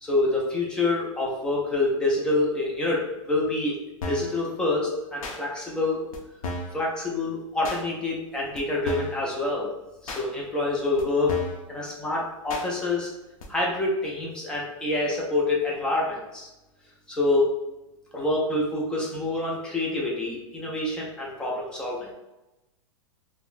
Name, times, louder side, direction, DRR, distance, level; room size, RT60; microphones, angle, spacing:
voice 1, 0.0-3.8 4.1-6.0 6.7-9.7 10.0-11.4 11.7-13.1 13.5-16.5 17.1-17.5 18.1-22.1, left 2 dB, 5° left, -4 dB, 0.3 m, -26 dB
sound 1, 4.0-4.4 5.2-5.4 6.1-6.2 6.4-6.8 7.6-7.8 8.6-8.7 8.9-9.2 10.1-10.2 11.0-11.1 11.3-11.6 12.5-12.7 13.4-13.5, left 1 dB, 90° left, 0.6 m, -33 dB
3.7 x 2.0 x 2.4 m, 0.98 s
supercardioid pair, 165°, 17 cm